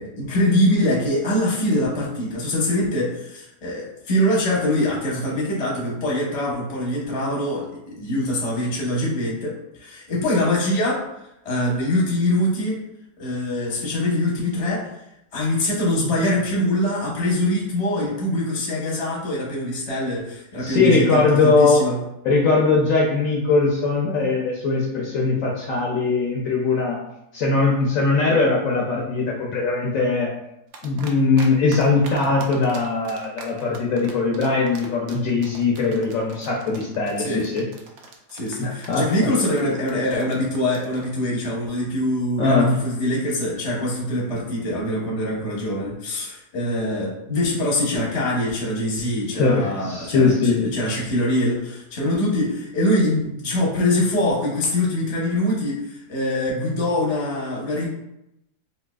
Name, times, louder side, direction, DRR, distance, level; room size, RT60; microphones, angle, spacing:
voice 1, 0.0-11.0 11.4-12.8 13.2-14.9 15.3-22.0 37.2-37.5 38.3-57.9, left 1 dB, 30° left, -4 dB, 0.7 m, -23 dB
voice 2, 20.6-21.8 22.2-27.0 27.3-30.3 30.8-37.6 38.6-39.0 42.4-42.7 49.3-50.7, left 3 dB, 65° left, -2 dB, 0.9 m, -20 dB
sound 1, 30.7-31.5 31.7-41.2, right 4 dB, 75° right, 0.6 m, -41 dB
4.0 x 2.7 x 2.3 m, 0.85 s
omnidirectional pair, 1.7 m